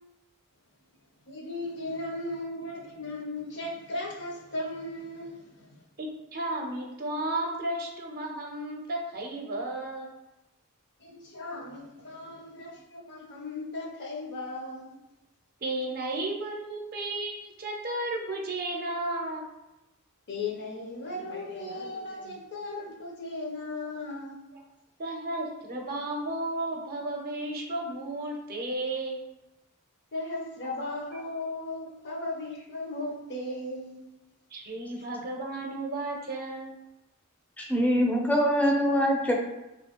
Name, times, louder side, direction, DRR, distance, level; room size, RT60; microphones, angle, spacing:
voice 1, 1.3-5.8 11.0-14.9 20.3-24.3 30.1-34.0, left 2 dB, 55° left, 0 dB, 0.7 m, -36 dB
voice 2, 6.0-10.1 15.6-19.4 24.5-24.6 25.0-29.2 31.1-31.2 34.5-36.7, right 2 dB, 45° right, 1 dB, 0.6 m, -33 dB
voice 3, 37.6-39.3, equal, 5° left, -1 dB, 0.5 m, -23 dB
3.0 x 2.7 x 2.9 m, 0.95 s
head